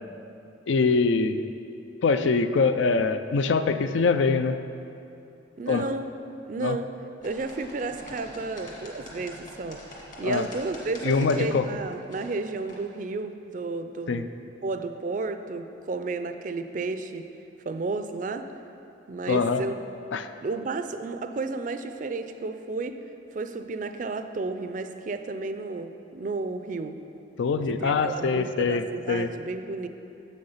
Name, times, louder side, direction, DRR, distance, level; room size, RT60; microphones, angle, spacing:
voice 1, 0.7-1.5 2.0-4.6 5.7-5.8 6.6-6.8 10.2-10.4 11.0-11.7 14.1-14.2 19.3-19.6 20.1-20.3 27.4-29.3, left 4 dB, 80° left, 10 dB, 0.4 m, -23 dB
voice 2, 5.6-6.1 6.5-6.9 7.2-9.8 10.2-14.3 14.6-17.3 17.6-18.5 19.1-19.8 20.4-23.0 23.3-27.0 27.7-29.9, right 3 dB, 45° right, 8 dB, 0.4 m, -32 dB
sound 1, 7.2-12.8, left 1 dB, 45° left, 1.6 m, -44 dB
7.4 x 6.6 x 5.6 m, 2.8 s
head